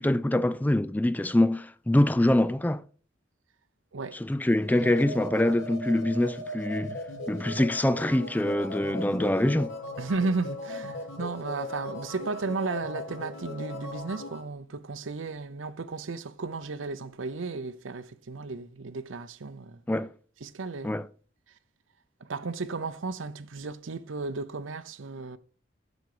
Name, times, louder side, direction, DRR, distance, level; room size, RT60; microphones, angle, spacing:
voice 1, 0.0-2.8 4.1-7.0 7.3-9.7 19.9-20.1 20.8-21.1, left 1 dB, 10° left, 0.3 m, -24 dB
sound 1, 4.6-14.4, left 1 dB, 85° left, 2.5 m, -38 dB
voice 2, 10.0-19.8 20.4-21.0 22.2-25.4, right 3 dB, 85° right, 0.7 m, -34 dB
8.0 x 7.0 x 4.9 m
head